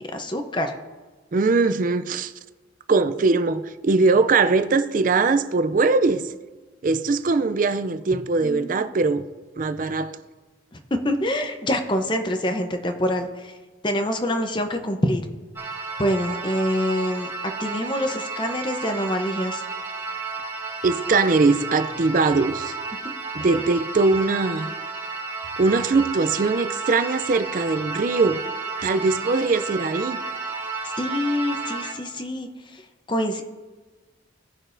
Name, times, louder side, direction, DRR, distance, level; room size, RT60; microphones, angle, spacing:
voice 1, 0.1-0.8 8.4-8.8 10.7-10.8 11.0-13.5 13.8-15.2 16.0-17.3 17.6-19.6 31.0-32.8 33.1-33.4, left 1 dB, 25° left, 0.8 m, -25 dB
voice 2, 1.3-2.3 2.9-6.3 6.8-9.2 9.6-10.2 20.8-22.7 23.3-24.7 25.6-28.4 28.8-30.2, right 3 dB, 45° right, 0.4 m, -21 dB
sound 1, 15.6-31.9, right 4 dB, 15° right, 1.6 m, -32 dB
17.5 x 6.1 x 2.6 m
head